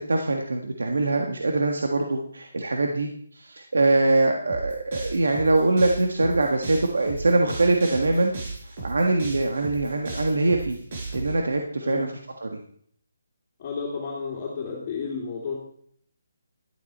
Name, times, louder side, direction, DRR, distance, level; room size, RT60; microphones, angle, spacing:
voice 1, 0.0-8.3 8.8-10.8 11.1-12.6, right 2 dB, 85° right, 3 dB, 1.5 m, -23 dB
sound 1, 4.5-11.3, right 3 dB, 45° right, 5.2 m, -35 dB
voice 2, 13.6-15.6, left 5 dB, 35° left, -3 dB, 2.7 m, -32 dB
12.0 x 9.9 x 4.3 m, 0.63 s
hypercardioid pair, 160°, 0 cm